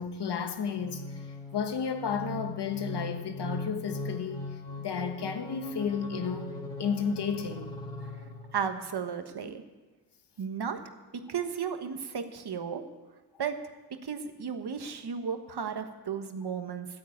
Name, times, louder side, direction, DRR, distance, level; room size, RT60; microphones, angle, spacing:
voice 1, 0.0-4.5 4.8-6.5 6.8-7.7, left 6 dB, 80° left, 1.3 m, -32 dB
sound 1, 0.7-8.7, left 2 dB, 10° left, 3.0 m, -40 dB
voice 2, 8.5-9.6 10.4-10.8 11.1-12.8 13.4-13.5 14.0-16.9, right 7 dB, 70° right, 1.3 m, -34 dB
11.5 x 9.5 x 8.5 m
wide cardioid pair, 80°, 40 cm